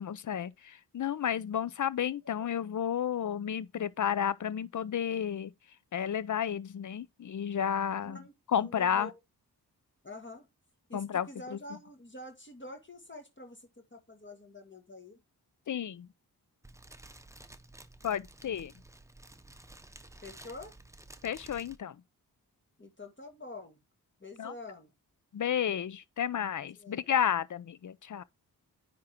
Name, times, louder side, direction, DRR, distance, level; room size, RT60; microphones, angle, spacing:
voice 1, 0.0-5.5 5.9-8.2 8.5-9.1 10.9-11.6 15.7-16.1 18.0-18.7 21.2-21.9 24.4-24.5 25.3-28.2, left 9 dB, 50° left, 0.6 m, -32 dB
voice 2, 8.0-9.2 10.0-10.5 10.9-15.2 20.2-20.7 22.8-23.8 24.2-24.9 26.8-27.0, left 2 dB, 30° left, 1.8 m, -47 dB
Fire, 16.6-21.8, right 2 dB, 5° right, 0.9 m, -52 dB
9.5 x 3.7 x 4.4 m
supercardioid pair, 40°, 40 cm